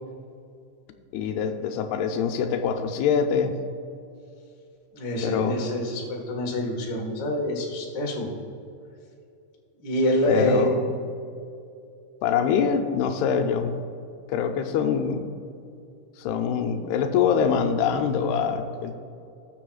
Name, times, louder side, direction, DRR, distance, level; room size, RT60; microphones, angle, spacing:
voice 1, 1.1-3.5 5.2-5.7 10.3-11.0 12.2-13.7 14.3-15.3 16.2-18.9, left 7 dB, 85° left, 6 dB, 2.6 m, -24 dB
voice 2, 4.9-8.3 9.8-10.7, left 1 dB, 50° left, -2 dB, 1.4 m, -26 dB
19.0 x 7.0 x 2.4 m, 2.5 s
omnidirectional pair, 4.5 m